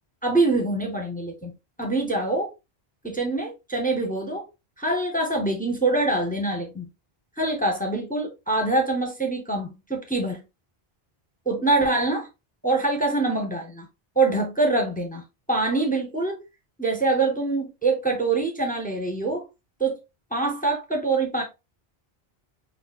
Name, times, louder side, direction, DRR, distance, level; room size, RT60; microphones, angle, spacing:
voice 1, 0.2-1.5 1.8-2.5 3.0-4.4 4.8-6.9 7.4-10.4 11.5-12.3 12.6-13.9 14.2-15.2 15.5-16.4 16.8-19.5 19.8-20.0 20.3-21.4, right 2 dB, 10° left, 0.6 m, -24 dB
5.7 x 2.3 x 2.3 m
omnidirectional pair, 1.1 m